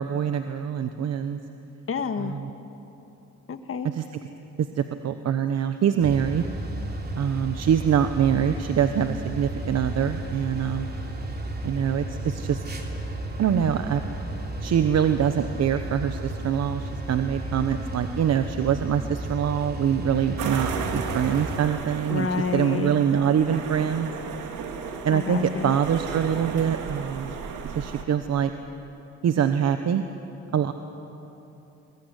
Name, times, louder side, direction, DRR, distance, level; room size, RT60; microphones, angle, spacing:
voice 1, 0.0-1.4 2.2-2.5 3.9-4.0 4.6-6.4 7.1-10.9 11.6-12.6 13.4-14.0 14.6-22.3 22.5-24.1 25.0-27.4 27.8-28.5 29.2-30.0 30.5-30.7, right 8 dB, 60° right, 8 dB, 1.1 m, -24 dB
voice 2, 1.9-2.3 3.5-3.9 22.1-23.0 25.1-25.7, left 5 dB, 45° left, 8 dB, 1.8 m, -29 dB
sound 1, 6.0-21.6, right 1 dB, 35° right, 2.9 m, -33 dB
sound 2, 20.4-28.0, right 6 dB, 85° right, 2.3 m, -34 dB
21.5 x 21.0 x 9.8 m, 3.0 s
cardioid pair, 90°, 30 cm